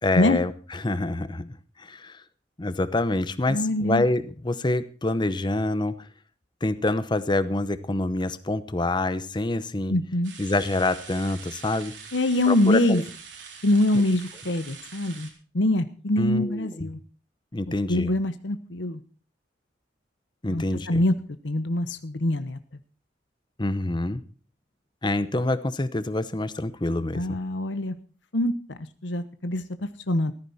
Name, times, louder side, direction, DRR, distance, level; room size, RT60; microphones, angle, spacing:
voice 1, 0.0-1.5 1.8-2.2 2.6-6.1 6.6-10.0 10.4-11.9 12.5-13.0 16.2-16.9 17.5-18.1 20.4-21.0 23.6-24.2 25.0-27.4, left 2 dB, 25° left, 13 dB, 0.8 m, -26 dB
voice 2, 3.5-4.0 9.9-10.3 12.1-13.0 13.6-15.3 15.5-17.0 17.7-19.0 20.5-21.1 21.4-22.6 27.1-27.9 28.3-30.3, left 1 dB, 90° left, 11 dB, 1.1 m, -24 dB
sound 1, 10.2-15.3, right 6 dB, 80° right, 3.9 m, -44 dB
14.5 x 14.0 x 4.2 m, 0.38 s
head